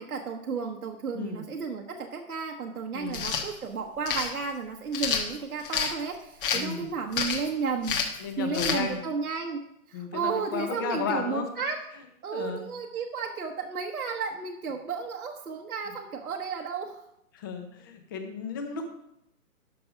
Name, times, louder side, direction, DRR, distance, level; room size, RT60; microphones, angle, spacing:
voice 1, 0.0-9.6 9.9-11.8 12.2-17.0, right 5 dB, 75° right, 1 dB, 1.3 m, -33 dB
voice 2, 1.1-1.5 2.9-3.3 6.5-6.9 8.2-9.0 9.9-11.5 12.3-12.6 17.3-18.9, left 5 dB, 15° left, 6 dB, 0.6 m, -34 dB
sound 1, 3.1-3.5 4.1-4.3 4.9-5.9 6.4-6.7 7.1-7.5 7.8-8.2 8.5-8.8, left 7 dB, 35° left, 1.2 m, -28 dB
12.5 x 5.4 x 5.0 m, 0.82 s
hypercardioid pair, 145°, 44 cm